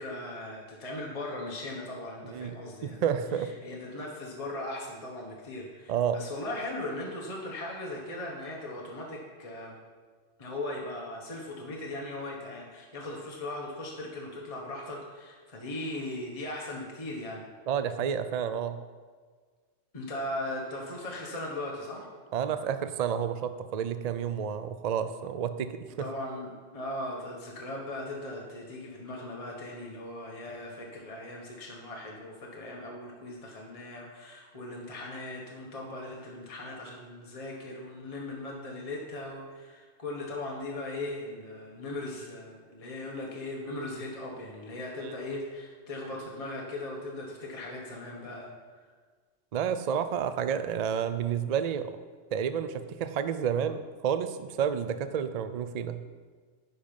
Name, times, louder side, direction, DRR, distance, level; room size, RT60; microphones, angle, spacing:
voice 1, 0.0-3.0 3.4-9.8 10.4-17.4 19.9-22.1 26.0-48.5, left 1 dB, 30° left, -2 dB, 1.2 m, -38 dB
voice 2, 2.3-3.5 5.9-6.2 17.7-18.8 22.3-26.1 45.0-45.1 49.5-51.9 52.3-56.0, right 8 dB, 60° right, 10 dB, 0.4 m, -30 dB
10.5 x 5.2 x 5.3 m, 1.5 s
omnidirectional pair, 1.3 m